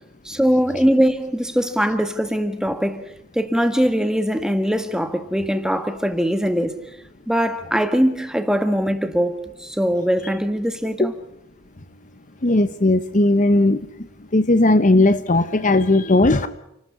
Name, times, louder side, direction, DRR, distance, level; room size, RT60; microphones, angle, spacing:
voice 1, 0.2-3.1 3.3-6.8 7.3-11.1, equal, 5° right, 1.7 m, -21 dB
voice 2, 12.4-13.8 14.3-16.5, left 2 dB, 35° left, 0.9 m, -17 dB
29.5 x 12.5 x 9.8 m
head